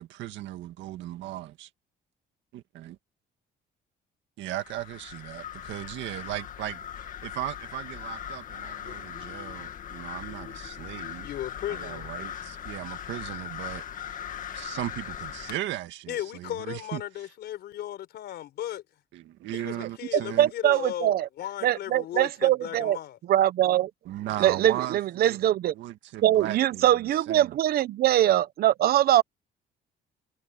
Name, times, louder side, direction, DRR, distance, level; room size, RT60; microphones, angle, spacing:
voice 1, 0.0-1.7 2.5-3.0 4.4-6.8 7.2-11.3 11.7-14.2 14.5-17.0 19.1-20.5 24.1-27.6, right 14 dB, 90° right, 1.8 m, -37 dB
sound 1, 4.6-15.6, left 9 dB, 45° left, 1.8 m, -39 dB
voice 2, 11.2-12.1 16.1-18.8 19.5-23.2, left 12 dB, 65° left, 4.2 m, -36 dB
voice 3, 20.4-21.3 21.6-23.0 23.3-23.9 24.4-25.7 26.2-29.2, right 12 dB, 55° right, 0.8 m, -22 dB
cardioid pair, 165°, 19 cm